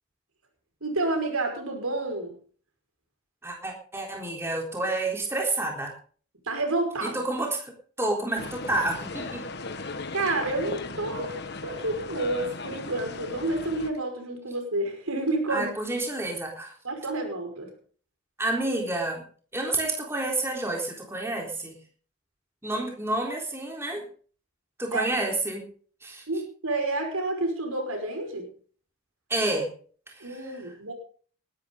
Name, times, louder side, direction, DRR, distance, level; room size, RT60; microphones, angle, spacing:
voice 1, 0.8-2.3 6.4-7.2 10.1-15.7 16.8-17.7 24.9-25.1 26.3-28.5 30.2-30.9, right 2 dB, 85° right, 5 dB, 5.4 m, -29 dB
voice 2, 3.4-5.9 7.0-9.4 15.5-16.7 18.4-19.2 19.5-21.8 22.6-24.0 24.8-25.7 26.0-26.2 29.3-29.7 30.1-30.4, right 2 dB, 10° right, 0 dB, 3.8 m, -29 dB
sound 1, 8.4-13.9, left 3 dB, 50° left, 1.6 m, -37 dB
19.5 x 12.5 x 3.9 m, 0.44 s
head